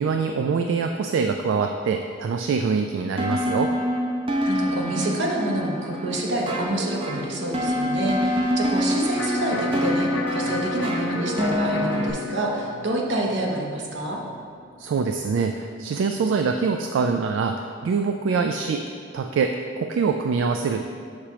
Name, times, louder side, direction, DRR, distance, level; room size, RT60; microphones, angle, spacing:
voice 1, 0.0-3.7 14.8-18.8 19.1-20.8, right 5 dB, 80° right, 4 dB, 0.3 m, -24 dB
sound 1, 3.2-12.1, equal, 30° right, 0.6 m, -26 dB
voice 2, 4.4-14.2, right 1 dB, 65° right, -1 dB, 0.9 m, -28 dB
Electric guitar, 9.2-15.2, left 4 dB, 80° left, 0.5 m, -34 dB
6.6 x 2.9 x 5.7 m, 2.4 s
head